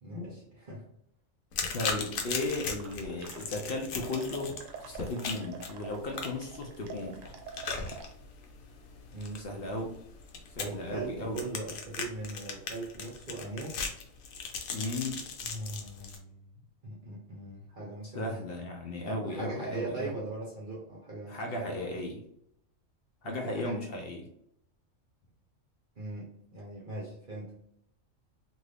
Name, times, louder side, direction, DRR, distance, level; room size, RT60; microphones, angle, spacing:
voice 1, 0.0-0.9 9.1-9.6 10.6-13.8 15.4-16.5 16.8-18.4 19.1-21.7 23.2-23.8 26.0-27.5, right 2 dB, 45° right, -4 dB, 0.8 m, -40 dB
sound 1, 1.5-16.2, left 5 dB, 80° left, 1.0 m, -39 dB
voice 2, 1.7-4.5 4.8-7.2 9.4-10.0 10.6-11.4 14.7-15.2 18.1-20.2 21.3-22.2 23.2-24.3, left 2 dB, 60° left, 1 dB, 0.6 m, -35 dB
sound 2, 2.6-3.8 4.0-8.0, right 6 dB, 75° right, 1.0 m, -47 dB
2.7 x 2.6 x 3.2 m, 0.73 s
omnidirectional pair, 1.4 m